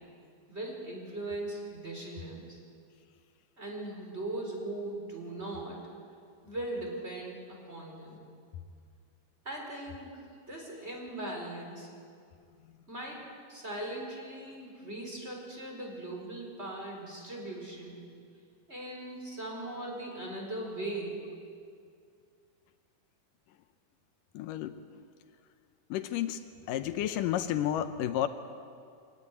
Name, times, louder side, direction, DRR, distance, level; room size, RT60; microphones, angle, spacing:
voice 1, 0.5-2.6 3.6-5.8 6.4-8.2 9.4-11.9 12.9-18.0 18.7-21.2, right 2 dB, 20° right, 0 dB, 4.7 m, -39 dB
voice 2, 24.3-24.8 25.9-26.4 26.7-28.3, left 11 dB, 80° left, 10 dB, 2.4 m, -31 dB
23.5 x 18.0 x 10.0 m, 2.3 s
omnidirectional pair, 3.8 m